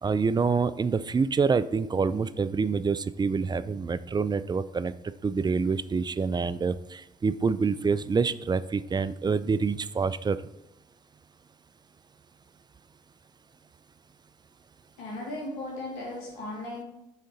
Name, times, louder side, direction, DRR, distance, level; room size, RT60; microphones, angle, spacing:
voice 1, 0.0-4.9 5.2-10.4, right 5 dB, 25° right, 15 dB, 0.4 m, -26 dB
voice 2, 15.0-16.8, left 1 dB, 85° left, -2 dB, 1.9 m, -36 dB
6.3 x 3.8 x 5.3 m, 0.89 s
hypercardioid pair, 55°, 16 cm